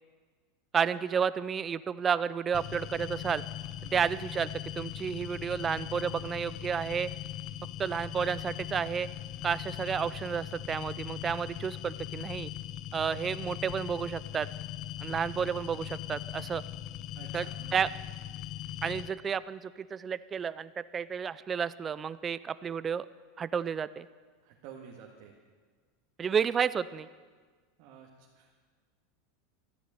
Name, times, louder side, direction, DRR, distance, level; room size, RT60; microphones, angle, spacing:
voice 1, 0.7-3.4 3.9-4.5 4.8-7.1 7.8-9.1 9.4-12.5 12.9-14.5 15.0-16.6 17.3-17.5 17.7-17.9 18.8-23.1 23.4-24.1 26.2-27.1, right 7 dB, 20° right, 16 dB, 0.4 m, -31 dB
sound 1, 2.5-19.1, left 12 dB, 40° left, 0.7 m, -40 dB
voice 2, 17.2-17.8 24.4-25.3 27.8-28.5, right 7 dB, 55° right, -1 dB, 1.9 m, -50 dB
13.0 x 10.5 x 9.2 m, 1.5 s
supercardioid pair, 155°, 0 cm